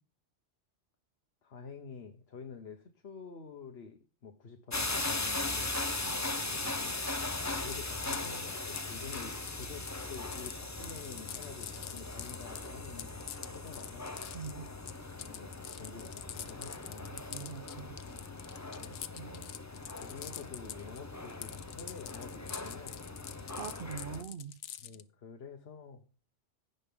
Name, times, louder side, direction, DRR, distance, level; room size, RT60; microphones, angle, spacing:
voice 1, 1.4-5.7 6.4-6.9 7.6-13.1 13.5-14.1 15.2-17.2 18.7-19.0 20.0-23.0 24.8-26.1, left 5 dB, 65° left, 1.4 m, -48 dB
sound 1, 4.7-24.2, left 2 dB, 15° left, 0.7 m, -39 dB
voice 2, 6.0-6.5 14.3-14.7 17.1-18.0 19.2-19.5 23.6-24.6, right 6 dB, 55° right, 0.9 m, -43 dB
sound 2, 7.7-21.0 21.2-25.0, left 11 dB, 80° left, 1.0 m, -45 dB
16.0 x 5.4 x 3.7 m
omnidirectional pair, 1.2 m